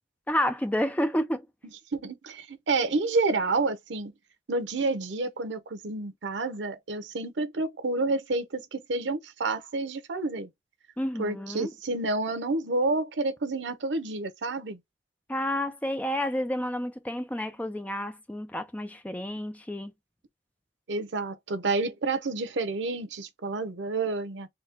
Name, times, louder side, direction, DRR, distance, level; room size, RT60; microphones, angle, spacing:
voice 1, 0.3-1.5 11.0-11.7 15.3-19.9, equal, 10° left, 0.4 m, -30 dB
voice 2, 1.9-4.1 4.5-10.5 11.2-14.8 20.9-24.5, right 3 dB, 90° right, 0.7 m, -29 dB
4.0 x 2.1 x 3.8 m
head